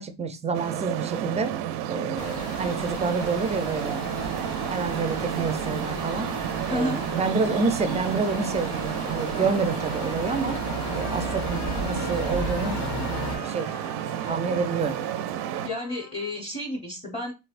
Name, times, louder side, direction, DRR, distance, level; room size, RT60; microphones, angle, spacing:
voice 1, 0.0-1.5 1.9-6.3 6.7-10.6 10.9-12.8 13.4-13.7 14.3-15.0, right 4 dB, 20° right, 0.4 m, -28 dB
Traffic noise roadway noise, 0.5-15.7, right 11 dB, 80° right, 0.5 m, -31 dB
sound 1, 2.2-13.3, left 1 dB, 70° left, 1.3 m, -34 dB
voice 2, 6.6-7.0 15.6-17.3, left 1 dB, 15° left, 0.8 m, -30 dB
Trumpet, 9.3-16.4, left 6 dB, 50° left, 0.6 m, -44 dB
3.3 x 3.0 x 2.4 m
cardioid pair, 120°, 40 cm